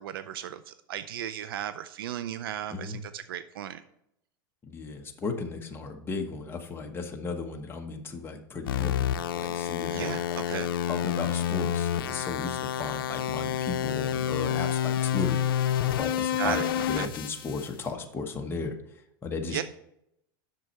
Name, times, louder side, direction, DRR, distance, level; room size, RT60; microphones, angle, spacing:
voice 1, 0.0-3.8 9.9-10.7 16.4-17.1 19.5-19.6, right 11 dB, 85° right, 12 dB, 0.5 m, -35 dB
voice 2, 4.6-9.1 9.3-10.1 10.9-15.4 16.0-16.6 16.9-18.7 19.2-19.6, left 4 dB, 20° left, 2 dB, 1.1 m, -35 dB
sound 1, 8.7-17.7, left 10 dB, 90° left, 0.5 m, -29 dB
8.1 x 6.4 x 4.4 m, 0.78 s
supercardioid pair, 125°, 12 cm